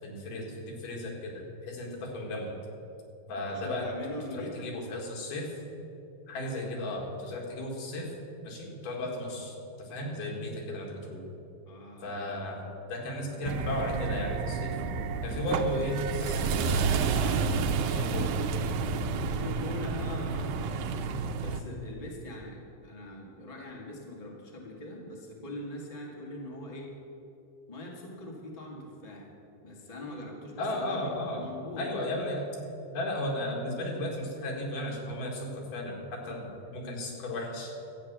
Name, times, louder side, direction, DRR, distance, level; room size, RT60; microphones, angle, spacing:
voice 1, 0.0-2.5 3.3-3.9 4.3-5.5 6.3-8.1 8.4-11.3 12.0-14.7 15.2-17.4 17.7-18.4 30.6-31.4 31.8-32.4 32.9-37.7, left 1 dB, 80° left, -1 dB, 3.5 m, -35 dB
voice 2, 3.5-4.7 11.7-12.1 19.2-21.0 21.4-26.9 27.7-29.3 29.6-32.0 36.8-37.1, left 1 dB, 15° left, -2 dB, 1.3 m, -42 dB
sound 1, 13.5-21.6, right 5 dB, 80° right, 2.1 m, -30 dB
12.5 x 8.8 x 7.3 m, 2.9 s
omnidirectional pair, 3.7 m